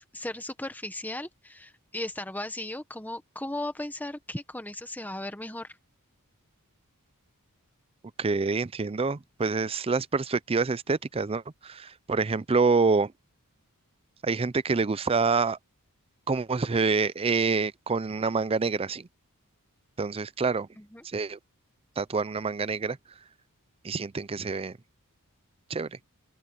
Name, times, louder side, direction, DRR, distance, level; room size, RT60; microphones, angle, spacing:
voice 1, 0.0-5.7 20.8-21.0, left 1 dB, 10° left, 1.4 m, -36 dB
voice 2, 8.2-13.1 14.2-15.6 16.3-19.1 20.0-20.7 21.0-21.4 22.0-23.0 23.8-24.8 25.7-26.0, right 4 dB, 25° right, 0.5 m, -27 dB
open air
head